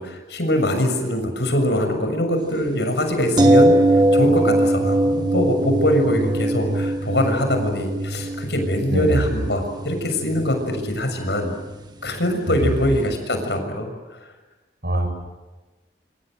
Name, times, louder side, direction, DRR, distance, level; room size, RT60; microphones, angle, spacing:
voice 1, 0.0-11.5 12.0-14.2, left 1 dB, 70° left, 6 dB, 6.9 m, -23 dB
sound 1, 3.4-13.2 13.5-13.6, right 1 dB, 25° right, 1.7 m, -22 dB
voice 2, 8.9-9.3 12.5-12.7 14.8-15.1, right 1 dB, 60° right, 5 dB, 7.5 m, -22 dB
28.0 x 26.5 x 7.9 m, 1.2 s
head